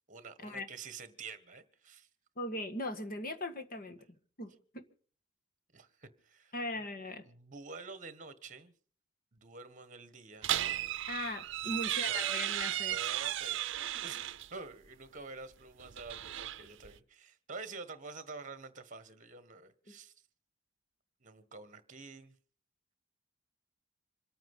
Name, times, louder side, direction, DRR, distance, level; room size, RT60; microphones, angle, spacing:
voice 1, 0.1-2.1 5.7-6.5 7.2-8.7 9.3-10.5 11.6-12.2 12.9-13.6 14.0-20.1 21.2-22.3, right 4 dB, 40° right, 1.6 m, -48 dB
voice 2, 2.4-4.0 4.4-4.8 6.5-7.2 11.1-13.0, left 1 dB, 45° left, 1.8 m, -39 dB
sound 1, 10.4-14.5 15.8-17.0, right 12 dB, 65° right, 0.7 m, -35 dB
26.5 x 9.0 x 5.6 m
head